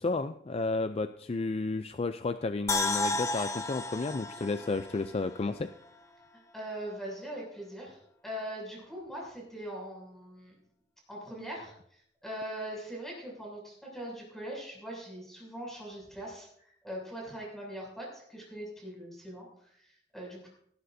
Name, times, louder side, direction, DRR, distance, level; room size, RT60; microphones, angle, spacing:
voice 1, 0.0-5.7, left 3 dB, 35° left, 10 dB, 0.4 m, -32 dB
sound 1, 2.7-5.9 6.2-6.3, left 2 dB, 15° left, 1.0 m, -33 dB
voice 2, 6.5-10.5 11.1-20.5, right 1 dB, ahead, -3 dB, 6.9 m, -41 dB
18.0 x 15.5 x 2.7 m, 0.68 s
head